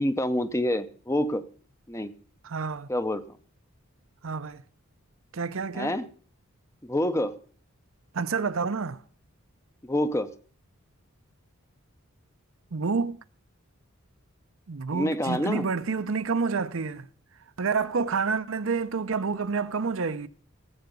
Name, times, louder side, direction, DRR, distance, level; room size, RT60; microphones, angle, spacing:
voice 1, 0.0-1.4 1.9-2.1 2.9-3.4 5.7-6.1 6.8-7.4 9.8-10.3 14.9-15.7, left 1 dB, 15° left, 0.6 m, -27 dB
voice 2, 2.4-2.9 4.2-4.6 5.3-6.0 8.1-9.0 12.7-13.2 14.7-17.1 17.6-20.3, right 5 dB, 70° right, 0.6 m, -28 dB
16.5 x 8.0 x 5.3 m
head